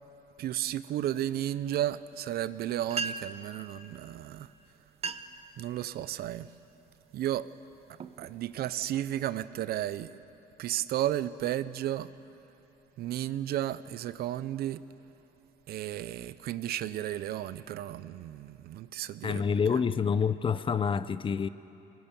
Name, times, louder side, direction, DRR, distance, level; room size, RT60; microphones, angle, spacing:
voice 1, 0.4-4.5 5.6-6.5 7.1-7.5 8.2-10.2 10.6-12.1 13.0-14.8 15.7-19.4, right 12 dB, 65° right, 0.7 m, -33 dB
sound 1, 2.6-2.7 2.9-3.5 4.4-4.5 4.9-5.5 5.9-6.3 6.9-7.2 7.7-9.0, right 5 dB, 40° right, 0.8 m, -38 dB
voice 2, 19.2-21.5, left 6 dB, 30° left, 0.6 m, -27 dB
23.5 x 22.0 x 7.0 m
cardioid pair, 110°, 17 cm